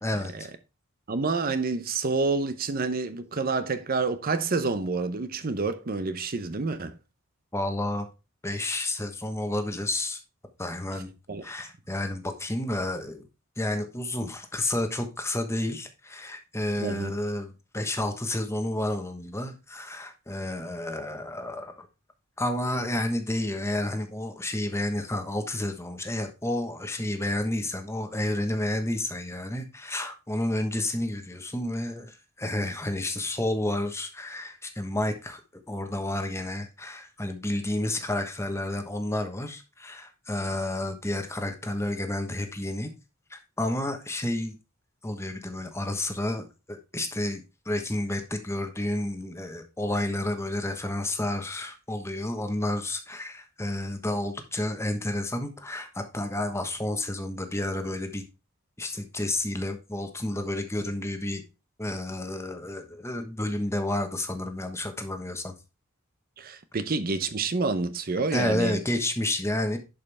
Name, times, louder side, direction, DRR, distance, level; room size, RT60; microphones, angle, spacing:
voice 1, 0.0-0.5 7.5-8.1 8.4-10.2 10.6-11.1 11.4-13.2 13.6-21.9 22.4-35.4 35.7-42.9 43.3-44.6 45.0-58.2 58.8-61.4 61.8-65.5 68.3-69.8, left 1 dB, 15° left, 1.1 m, -30 dB
voice 2, 1.1-6.9 11.3-11.4 16.8-17.1 66.4-68.8, right 3 dB, 45° right, 0.7 m, -28 dB
11.0 x 5.3 x 3.4 m
head